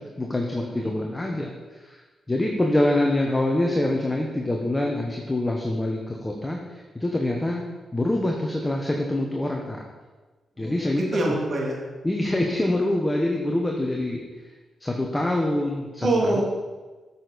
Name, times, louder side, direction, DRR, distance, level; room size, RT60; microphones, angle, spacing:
voice 1, 0.0-2.0 2.3-7.6 7.9-9.8 10.6-11.3 12.0-14.2 14.8-16.4, left 1 dB, 15° left, 0 dB, 1.1 m, -25 dB
voice 2, 10.6-11.8 16.0-16.4, right 2 dB, 55° right, -2 dB, 2.5 m, -25 dB
8.6 x 6.8 x 4.2 m, 1.3 s
cardioid pair, 65°, 0 cm